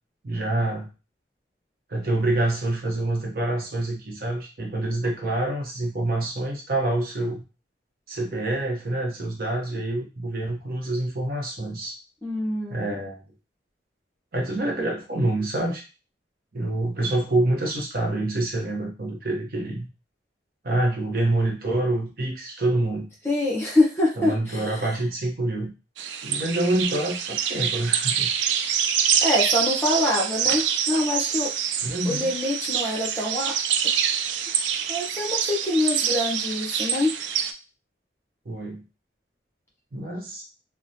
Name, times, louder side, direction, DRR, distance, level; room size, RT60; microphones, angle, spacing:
voice 1, 0.2-0.9 1.9-7.4 8.1-11.9 12.7-13.2 14.3-15.8 16.5-19.9 20.6-23.1 24.2-25.7 26.2-28.3 31.8-32.3 38.5-38.8 39.9-40.4, right 2 dB, 55° right, 1 dB, 0.7 m, -26 dB
voice 2, 12.2-12.8 23.2-24.8 29.2-31.5 32.0-33.5 34.9-37.1, left 1 dB, 15° left, -4 dB, 0.7 m, -25 dB
sound 1, 26.0-37.5, right 8 dB, 80° right, 0.3 m, -26 dB
3.0 x 2.1 x 2.6 m, 0.31 s
head